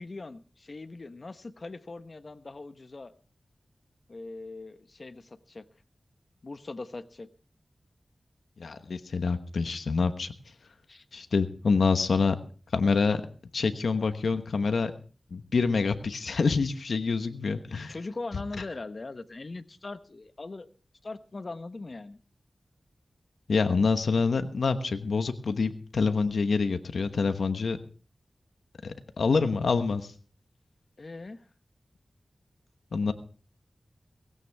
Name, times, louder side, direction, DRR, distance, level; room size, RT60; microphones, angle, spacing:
voice 1, 0.0-3.1 4.1-5.6 6.4-7.3 10.9-11.0 17.9-20.7 21.0-22.2 31.0-31.5, left 3 dB, 55° left, 1.1 m, -40 dB
voice 2, 8.6-10.3 11.1-12.4 12.7-13.2 13.5-14.9 15.3-17.9 23.5-27.8 28.8-30.1 32.9-33.1, left 4 dB, 90° left, 1.2 m, -26 dB
18.0 x 16.5 x 3.5 m
cardioid pair, 50°, 0 cm